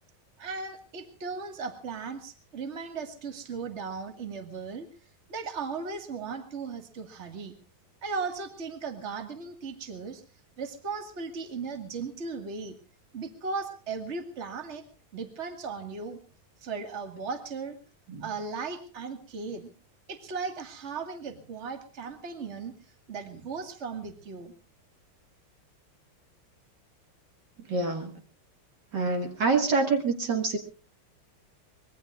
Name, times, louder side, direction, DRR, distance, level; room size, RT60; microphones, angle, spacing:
voice 1, 0.4-4.9 5.3-7.6 8.0-10.2 10.6-12.8 13.1-14.9 15.1-16.2 16.6-17.8 18.2-19.7 20.1-22.7 23.1-24.5, right 4 dB, 35° right, 6 dB, 2.1 m, -37 dB
voice 2, 27.7-28.1 28.9-30.6, right 4 dB, 50° right, 4 dB, 2.4 m, -26 dB
25.0 x 21.5 x 2.5 m, 0.36 s
omnidirectional pair, 2.3 m